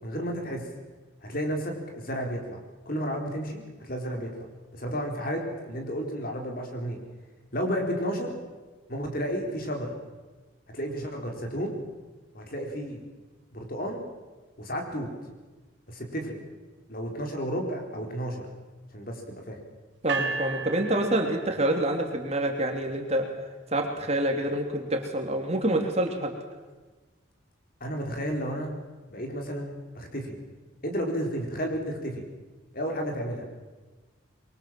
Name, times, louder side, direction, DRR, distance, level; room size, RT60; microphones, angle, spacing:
voice 1, 0.0-0.7 1.2-2.6 2.9-4.3 4.7-7.0 7.5-8.3 8.9-10.0 10.7-11.7 12.3-13.0 13.5-14.0 14.6-15.1 15.9-16.4 16.9-18.4 18.9-19.6 27.8-28.7 29.1-30.3 30.8-32.2 32.7-33.4, equal, 45° left, 3 dB, 4.2 m, -32 dB
voice 2, 20.0-23.3 23.7-26.3, right 1 dB, 30° right, 3 dB, 2.8 m, -27 dB
sound 1, 20.1-22.2, right 5 dB, 60° right, 2.7 m, -34 dB
26.0 x 23.0 x 7.6 m, 1.3 s
head